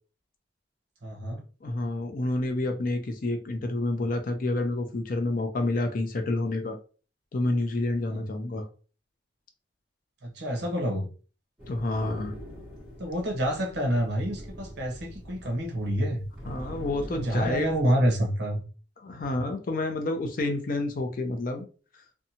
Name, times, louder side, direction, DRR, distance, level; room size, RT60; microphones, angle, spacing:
voice 1, 1.0-1.4 8.0-8.2 10.2-11.1 13.0-16.2 17.1-18.6, equal, 60° right, 1 dB, 0.8 m, -28 dB
voice 2, 1.6-6.8 7.3-8.7 11.7-12.3 16.5-17.9 19.0-21.6, left 2 dB, 45° left, 6 dB, 0.5 m, -29 dB
sound 1, 11.6-17.8, equal, 5° right, 1.2 m, -43 dB
2.7 x 2.2 x 2.7 m, 0.37 s
head